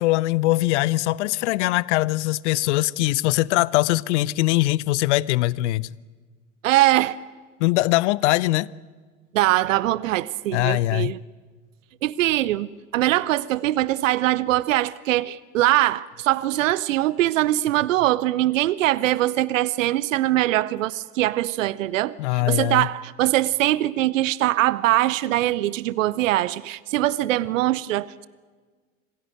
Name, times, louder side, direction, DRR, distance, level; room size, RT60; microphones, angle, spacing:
voice 1, 0.0-5.9 7.6-8.7 10.5-11.1 22.2-22.9, left 18 dB, 60° left, 0.7 m, -22 dB
voice 2, 6.6-7.2 9.3-11.2 12.0-28.3, right 15 dB, 70° right, 0.7 m, -22 dB
26.0 x 16.0 x 9.2 m
figure-of-eight pair, 75°, 40 cm